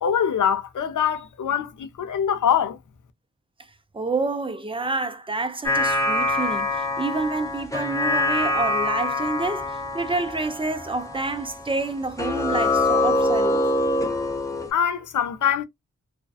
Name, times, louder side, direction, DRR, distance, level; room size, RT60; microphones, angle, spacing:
voice 1, 0.0-2.8 14.7-15.6, left 8 dB, 75° left, 0.6 m, -23 dB
voice 2, 3.9-13.7, right 3 dB, 15° right, 0.5 m, -28 dB
sound 1, 5.6-11.9 12.2-14.7, left 2 dB, 10° left, 0.8 m, -24 dB
2.5 x 2.2 x 2.3 m
cardioid pair, 60°, 31 cm